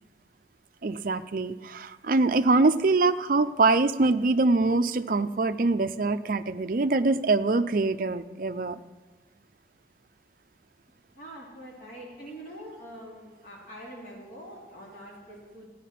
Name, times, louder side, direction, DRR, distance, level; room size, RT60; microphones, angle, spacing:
voice 1, 0.8-8.8, right 3 dB, 45° right, 11 dB, 0.5 m, -24 dB
voice 2, 11.2-15.7, right 1 dB, 50° left, -4 dB, 2.9 m, -44 dB
15.0 x 10.0 x 5.9 m, 1.3 s
head